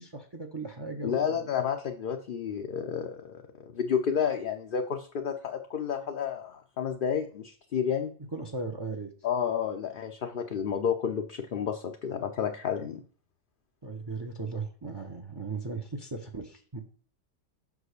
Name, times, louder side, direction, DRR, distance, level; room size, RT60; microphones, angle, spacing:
voice 1, 0.0-1.5 8.3-9.1 13.8-16.8, right 3 dB, 25° right, 6 dB, 0.8 m, -37 dB
voice 2, 1.0-8.1 9.2-13.0, left 7 dB, 50° left, 4 dB, 0.8 m, -31 dB
6.2 x 4.9 x 6.5 m, 0.44 s
omnidirectional pair, 1.2 m